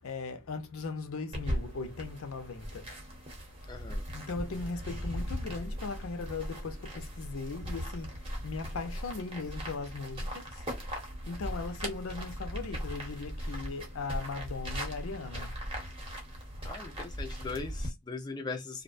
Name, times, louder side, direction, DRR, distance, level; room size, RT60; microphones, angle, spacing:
voice 1, 0.0-2.9 4.1-10.6 11.3-15.6, left 4 dB, 70° left, 0.5 m, -38 dB
sound 1, 1.3-17.9, equal, 25° right, 0.8 m, -39 dB
voice 2, 3.7-4.0 16.6-18.8, left 4 dB, 20° left, 0.4 m, -39 dB
2.5 x 2.1 x 2.4 m
head